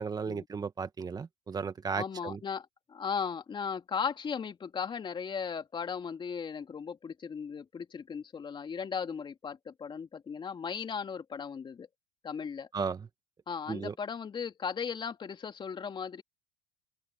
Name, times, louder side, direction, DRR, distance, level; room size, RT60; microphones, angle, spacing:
voice 1, 0.0-2.4 12.7-13.0 13.7-13.9, right 5 dB, 20° right, 1.8 m, -35 dB
voice 2, 1.9-11.9 12.2-12.7 13.5-16.2, left 6 dB, 25° left, 3.1 m, -37 dB
open air
hypercardioid pair, 90°, 17 cm